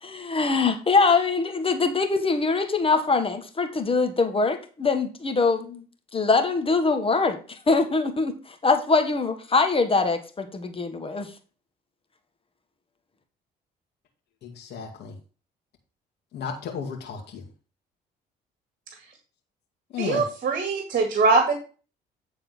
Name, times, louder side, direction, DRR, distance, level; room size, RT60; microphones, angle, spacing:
voice 1, 0.0-5.8 6.1-11.3, left 4 dB, 30° left, 7 dB, 1.6 m, -23 dB
voice 2, 14.4-15.2 16.3-17.5 19.9-20.3, left 6 dB, 65° left, 1 dB, 2.1 m, -33 dB
voice 3, 20.0-21.5, right 3 dB, 50° right, 6 dB, 1.9 m, -22 dB
9.5 x 4.1 x 5.5 m, 0.36 s
supercardioid pair, 70°, 19 cm